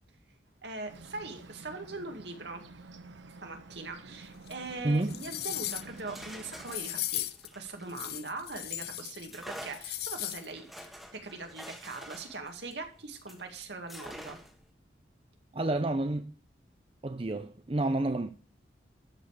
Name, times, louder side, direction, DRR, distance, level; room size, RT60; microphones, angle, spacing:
voice 1, 0.6-2.6 3.4-7.3 7.5-10.7 11.1-14.4, right 3 dB, 70° right, 2.2 m, -41 dB
Bird, 0.9-6.8, right 3 dB, 85° right, 1.1 m, -50 dB
sound 1, 4.5-4.6 5.0-6.0 6.7-7.5 7.9-9.3 9.6-10.5 10.8-10.9, left 14 dB, 55° left, 0.7 m, -36 dB
voice 2, 4.8-5.2 15.5-16.3 17.0-18.3, right 2 dB, 30° right, 0.5 m, -29 dB
sound 2, 5.7-8.6 9.3-13.5 13.9-14.7, equal, ahead, 1.4 m, -47 dB
13.0 x 5.4 x 6.6 m
head